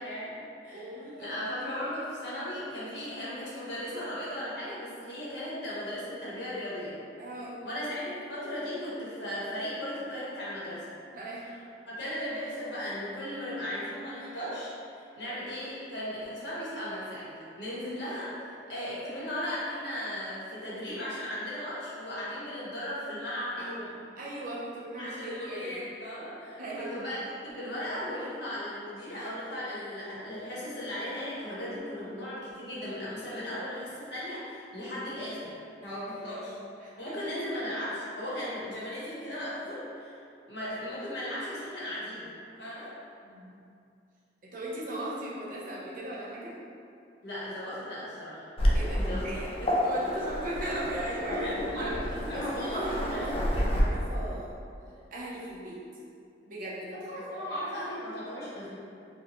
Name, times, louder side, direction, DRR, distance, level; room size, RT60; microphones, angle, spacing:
voice 1, 0.0-7.0 7.6-10.8 11.4-11.6 11.8-23.7 25.0-35.6 35.8-36.6 37.0-40.2 40.5-42.3 42.6-42.9 47.2-48.4 49.0-49.7 51.2-52.7 53.1-53.2 56.9-58.8, left 1 dB, 65° left, -9 dB, 1.2 m, -37 dB
voice 2, 0.7-1.6 7.2-7.6 11.1-11.5 15.2-15.3 23.6-25.8 26.6-26.9 36.8-37.4 43.2-43.5 44.5-46.6 48.7-49.5 49.8-51.4 51.8-51.9 52.3-54.5 55.1-55.8 56.5-57.5, right 1 dB, 50° right, -6 dB, 0.7 m, -38 dB
Waves surf, 48.6-53.8, equal, 30° left, 0.4 m, -30 dB
4.4 x 2.2 x 3.0 m, 2.5 s
head